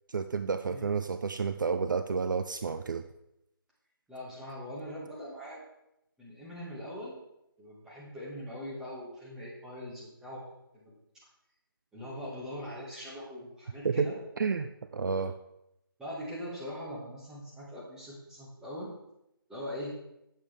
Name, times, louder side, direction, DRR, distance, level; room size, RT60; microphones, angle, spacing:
voice 1, 0.1-3.0 13.8-14.1 14.4-15.4, right 5 dB, 55° right, 10 dB, 0.4 m, -30 dB
voice 2, 0.6-1.0 4.1-5.6 6.2-7.2 7.6-10.4 10.7-10.9 11.9-14.2 16.0-19.0 19.5-20.0, equal, 5° right, -8 dB, 2.1 m, -41 dB
8.5 x 7.1 x 3.6 m, 0.83 s
figure-of-eight pair, 150°, 12 cm